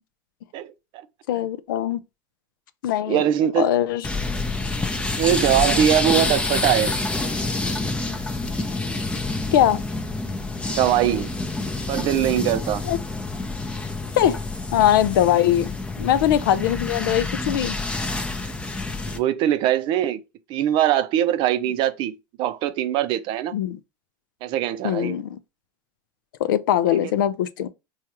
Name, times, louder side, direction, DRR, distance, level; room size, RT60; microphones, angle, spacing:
voice 1, 1.3-2.0 2.8-3.2 3.6-4.1 9.5-9.8 12.8-13.0 14.2-14.4 14.7-17.8 23.5-23.8 24.8-25.4 26.4-27.7, left 11 dB, 85° left, 0.4 m, -21 dB
voice 2, 3.1-3.7 5.2-6.9 10.7-11.3 11.9-12.8 19.1-20.2 20.5-23.5 24.4-25.2 26.9-27.0, right 11 dB, 50° right, 0.5 m, -22 dB
sound 1, 4.0-19.2, left 2 dB, 10° left, 0.5 m, -27 dB
4.5 x 2.3 x 2.9 m
supercardioid pair, 110°, 11 cm